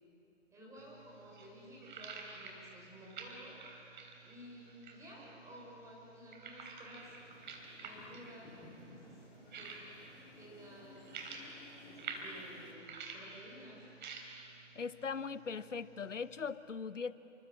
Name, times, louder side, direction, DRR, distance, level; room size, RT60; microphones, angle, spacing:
voice 1, 0.5-3.6 4.2-7.2 7.7-8.5 9.2-9.7 10.4-11.2 11.8-14.1, equal, 10° right, -5 dB, 6.5 m, -54 dB
sound 1, 0.8-16.5, right 4 dB, 40° right, 3.8 m, -51 dB
sound 2, 7.0-12.7, left 2 dB, 20° left, 2.7 m, -57 dB
voice 2, 14.7-17.1, left 5 dB, 80° left, 15 dB, 1.1 m, -40 dB
28.5 x 25.5 x 7.7 m, 2.7 s
figure-of-eight pair, 140°, 37 cm